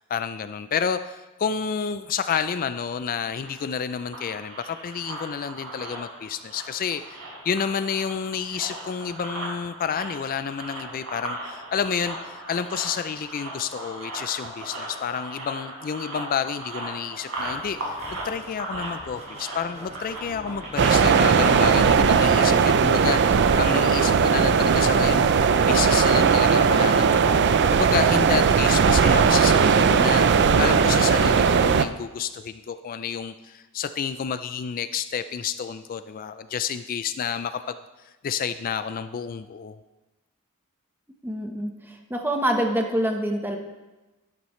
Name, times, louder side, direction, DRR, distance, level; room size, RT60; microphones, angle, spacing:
voice 1, 0.0-37.6 38.0-39.8, left 7 dB, 40° left, 11 dB, 0.3 m, -30 dB
sound 1, 3.3-21.9, right 1 dB, 70° right, 4.0 m, -38 dB
sound 2, 17.4-26.0, right 1 dB, 30° right, 1.3 m, -45 dB
sound 3, 20.8-31.9, right 6 dB, 50° right, 0.4 m, -18 dB
voice 2, 41.2-43.6, right 1 dB, 10° right, 3 dB, 1.0 m, -26 dB
12.0 x 11.5 x 3.1 m, 1.1 s
head